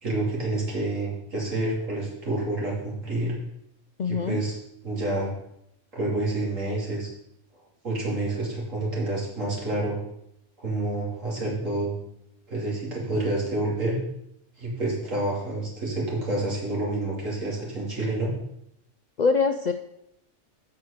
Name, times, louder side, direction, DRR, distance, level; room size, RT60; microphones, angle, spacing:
voice 1, 0.0-3.3 4.0-4.6 4.8-5.3 5.9-7.1 7.8-10.0 10.6-11.9 12.5-14.0 14.6-18.3, right 2 dB, 85° right, -4 dB, 3.4 m, -28 dB
voice 2, 4.0-4.4 19.2-19.7, left 4 dB, 60° left, 7 dB, 0.5 m, -23 dB
8.2 x 5.9 x 6.6 m, 0.78 s
omnidirectional pair, 1.3 m